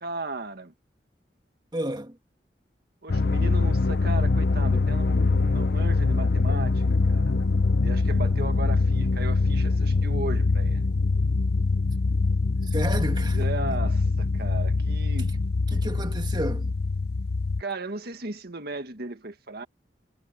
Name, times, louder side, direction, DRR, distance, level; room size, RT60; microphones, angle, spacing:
voice 1, 0.0-0.7 3.0-6.8 7.1-7.4 7.8-10.8 13.3-15.3 17.6-19.7, right 2 dB, 60° right, 1.9 m, -36 dB
voice 2, 1.7-2.2 12.6-13.4 15.2-15.3 15.7-16.7, right 1 dB, 25° right, 1.8 m, -31 dB
sound 1, 3.1-17.6, left 3 dB, 65° left, 0.6 m, -23 dB
head